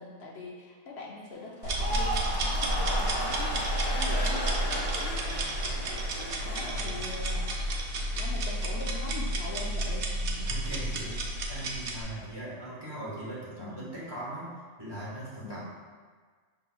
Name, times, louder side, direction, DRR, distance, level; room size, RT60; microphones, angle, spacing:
voice 1, 0.0-4.9 6.4-7.5 8.1-10.5 13.6-13.8 15.4-15.6, left 3 dB, 70° left, -2 dB, 0.9 m, -42 dB
sound 1, 1.6-7.9 8.2-8.7, left 1 dB, 30° left, 0.5 m, -36 dB
sound 2, 1.6-12.0, right 1 dB, 60° right, 0.7 m, -31 dB
voice 2, 10.4-14.5 14.8-15.6, right 1 dB, 20° right, -9 dB, 1.3 m, -40 dB
5.5 x 4.1 x 2.2 m, 1.5 s
omnidirectional pair, 1.2 m